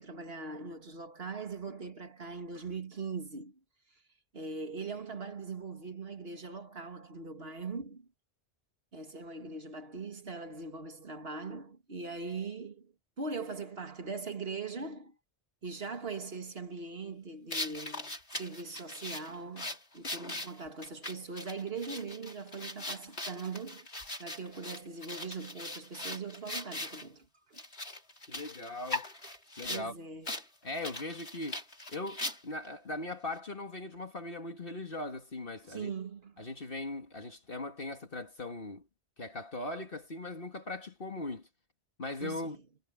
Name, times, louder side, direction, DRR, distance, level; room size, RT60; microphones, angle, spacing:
voice 1, 0.0-3.6 4.3-8.1 8.9-15.2 15.6-23.9 24.2-27.6 29.7-30.4 35.6-36.4 42.2-42.6, right 4 dB, 65° right, 2.4 m, -41 dB
sound 1, 17.5-27.0 27.5-29.9 30.2-30.4 30.7-32.7, left 2 dB, 85° left, 5.7 m, -40 dB
voice 2, 28.3-29.1 29.6-30.0 30.6-31.6 31.9-35.9 36.4-38.8 39.2-41.5 42.0-42.6, left 2 dB, 60° left, 2.3 m, -39 dB
omnidirectional pair, 1.1 m